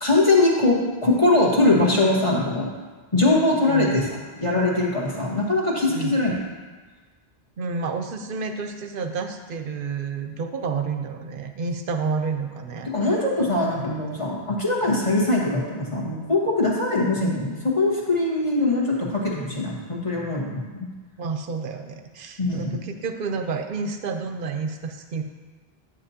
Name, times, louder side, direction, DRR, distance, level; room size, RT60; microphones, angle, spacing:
voice 1, 0.0-2.7 3.1-4.1 4.4-6.3 12.8-20.9 22.4-22.8, left 2 dB, 30° left, -5 dB, 1.5 m, -22 dB
voice 2, 3.7-4.1 5.9-6.2 7.6-12.9 21.2-25.2, right 5 dB, 60° right, 6 dB, 0.8 m, -30 dB
10.0 x 7.0 x 2.8 m, 1.4 s
omnidirectional pair, 1.1 m